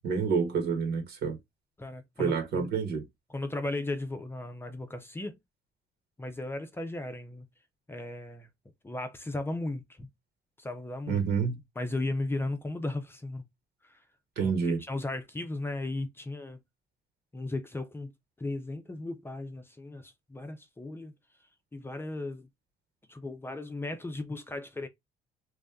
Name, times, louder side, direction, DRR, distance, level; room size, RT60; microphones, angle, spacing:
voice 1, 0.0-1.4 2.2-3.0 11.1-11.6 14.3-14.8, right 5 dB, 70° right, 1.6 m, -28 dB
voice 2, 1.8-2.7 3.3-5.4 6.2-7.5 7.9-8.5 8.8-10.1 10.6-11.2 11.8-13.4 13.8-14.0 14.4-16.6 17.3-18.1 18.4-21.1 21.7-22.5 23.1-24.9, left 2 dB, 15° left, 0.6 m, -36 dB
3.2 x 2.6 x 3.4 m
cardioid pair, 110°, 17 cm